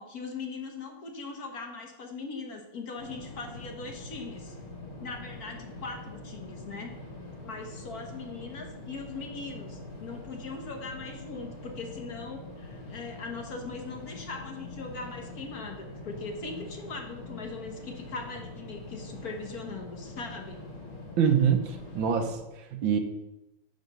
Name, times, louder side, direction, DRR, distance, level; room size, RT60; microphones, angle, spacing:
voice 1, 0.0-4.5 5.0-6.9 7.4-20.6, left 4 dB, 50° left, 3 dB, 1.5 m, -40 dB
sound 1, 3.0-22.3, left 2 dB, 80° left, 3.6 m, -44 dB
voice 2, 21.2-23.0, right 7 dB, 75° right, 6 dB, 1.6 m, -25 dB
9.3 x 5.3 x 6.7 m, 0.97 s
omnidirectional pair, 2.2 m